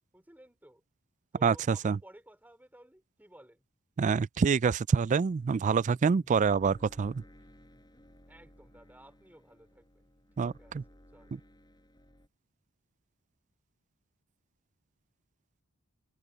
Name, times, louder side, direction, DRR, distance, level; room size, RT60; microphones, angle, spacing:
voice 1, 0.1-0.8 1.3-3.7 8.3-11.4, right 1 dB, 10° right, 4.3 m, -57 dB
voice 2, 1.4-2.0 4.0-7.2 10.4-10.8, right 5 dB, 35° right, 0.3 m, -26 dB
sound 1, 5.3-12.3, equal, 20° left, 6.9 m, -58 dB
head